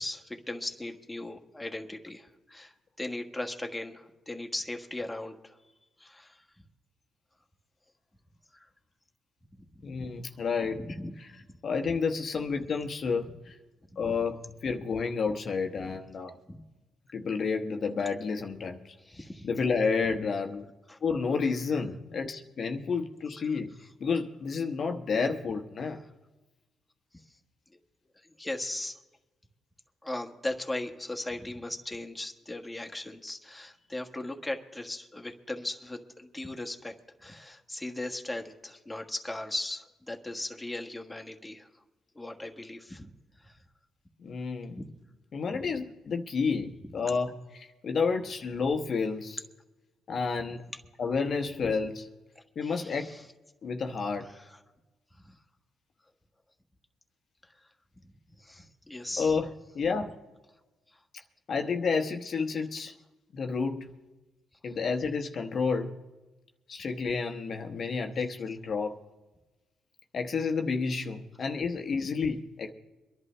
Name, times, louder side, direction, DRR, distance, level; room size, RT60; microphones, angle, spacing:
voice 1, 0.0-5.6 6.0-6.4 10.0-10.1 11.0-11.1 16.5-16.6 19.0-19.5 20.9-21.0 28.4-29.0 30.0-36.9 37.2-41.7 42.1-43.1 43.4-43.5 45.5-45.6 52.3-53.2 54.2-54.4 55.3-55.4 58.4-59.4 64.7-64.8, left 1 dB, 10° left, 2 dB, 1.4 m, -38 dB
voice 2, 9.8-10.8 11.2-11.3 11.6-13.5 14.0-16.4 17.1-18.9 19.4-20.7 21.0-23.7 24.0-26.0 44.2-44.8 45.3-49.4 50.1-50.6 51.0-52.1 52.6-53.1 53.6-54.3 59.2-59.5 59.7-60.1 61.5-62.9 63.3-63.9 64.6-65.9 66.7-69.0 70.1-72.7, left 5 dB, 50° left, 4 dB, 1.0 m, -30 dB
24.0 x 11.0 x 3.3 m, 1.1 s
cardioid pair, 90°, 0 cm